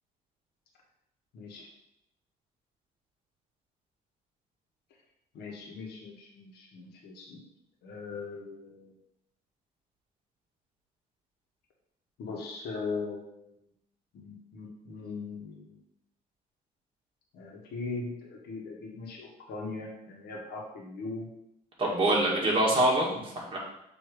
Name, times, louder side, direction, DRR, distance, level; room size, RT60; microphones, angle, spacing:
voice 1, 1.3-1.7 5.3-7.4 7.8-8.9 12.2-13.5 14.1-15.8 17.3-21.3 22.0-22.4, left 4 dB, 70° left, -2 dB, 1.5 m, -40 dB
voice 2, 21.8-23.6, right 1 dB, 30° right, -4 dB, 2.1 m, -25 dB
6.5 x 3.0 x 4.9 m, 0.80 s
cardioid pair, 110°, 17 cm